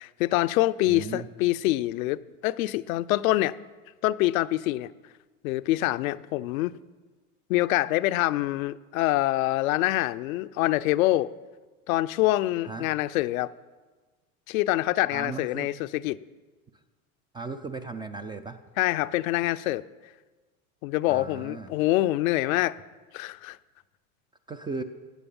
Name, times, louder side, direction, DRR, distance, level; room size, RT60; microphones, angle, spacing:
voice 1, 0.0-3.6 4.0-4.9 5.4-6.8 7.5-11.3 11.9-13.5 14.5-16.2 18.8-19.8 20.8-22.8 23.1-23.6, left 16 dB, 70° left, 0.6 m, -25 dB
voice 2, 0.9-1.3 12.6-12.9 15.1-15.7 17.3-18.6 21.1-21.7 24.5-24.8, right 4 dB, 10° right, 0.3 m, -36 dB
14.5 x 8.3 x 5.4 m
hypercardioid pair, 100°, 43 cm